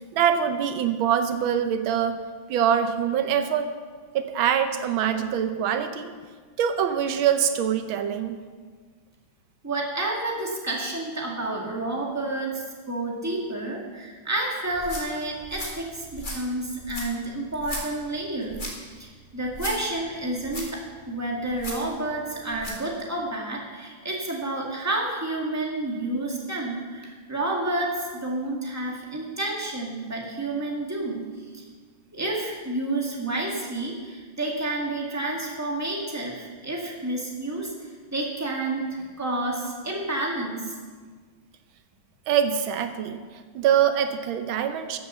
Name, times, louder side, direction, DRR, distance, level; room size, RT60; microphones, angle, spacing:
voice 1, 0.1-2.2 2.5-3.7 4.1-6.1 6.6-8.4 42.3-43.2 43.5-45.0, right 8 dB, 80° right, 9 dB, 1.6 m, -24 dB
voice 2, 9.6-31.2 31.5-31.6 32.1-40.7, right 2 dB, 10° right, -2 dB, 1.9 m, -30 dB
sound 1, 14.7-22.9, left 1 dB, 25° left, 2.2 m, -38 dB
13.0 x 8.0 x 6.9 m, 1.5 s
omnidirectional pair, 2.2 m